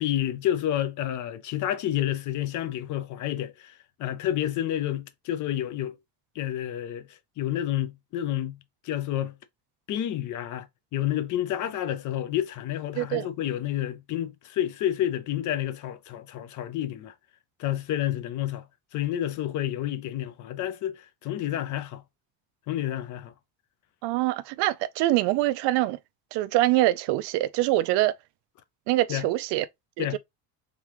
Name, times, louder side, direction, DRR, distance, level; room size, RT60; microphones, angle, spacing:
voice 1, 0.0-5.9 6.4-8.6 8.8-9.3 9.9-10.7 10.9-17.1 17.6-18.6 18.9-22.0 22.7-23.3 29.1-29.3 30.0-30.2, left 12 dB, 50° left, 0.6 m, -29 dB
voice 2, 13.0-13.3 24.0-26.0 26.3-28.1 28.9-29.6 30.0-30.2, right 16 dB, 85° right, 0.6 m, -24 dB
3.7 x 3.6 x 2.9 m
cardioid pair, 165°, 40 cm